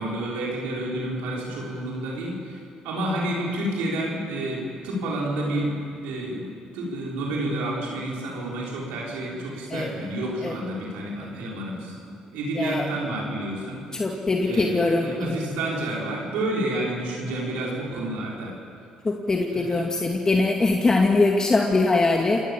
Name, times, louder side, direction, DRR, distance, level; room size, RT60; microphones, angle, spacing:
voice 1, 0.0-6.5 6.7-11.9 12.3-14.1 14.4-18.5 19.5-20.0, right 1 dB, 85° right, -3 dB, 5.8 m, -30 dB
voice 2, 13.9-15.4 19.0-22.4, left 3 dB, 30° left, 1 dB, 2.3 m, -22 dB
28.5 x 18.0 x 7.4 m, 2.6 s
supercardioid pair, 65°, 2 cm